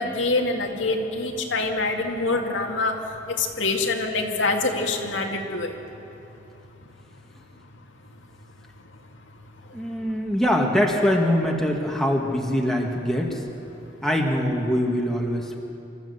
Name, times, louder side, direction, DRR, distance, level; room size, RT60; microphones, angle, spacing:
voice 1, 0.0-3.0 3.3-5.8, left 3 dB, 90° left, 1 dB, 2.2 m, -25 dB
voice 2, 9.7-13.4 14.0-15.6, equal, ahead, -1 dB, 1.8 m, -23 dB
25.5 x 14.0 x 8.0 m, 3.0 s
head